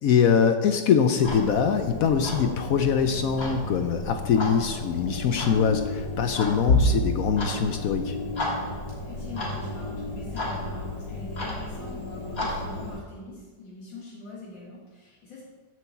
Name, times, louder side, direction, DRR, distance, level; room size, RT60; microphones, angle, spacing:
voice 1, 0.0-8.2, left 7 dB, 70° left, 7 dB, 0.8 m, -23 dB
Clock, 1.2-13.0, left 2 dB, 50° left, 2.3 m, -30 dB
voice 2, 8.8-15.4, left 2 dB, 85° left, -5 dB, 2.5 m, -43 dB
7.7 x 6.4 x 7.2 m, 1.4 s
omnidirectional pair, 2.0 m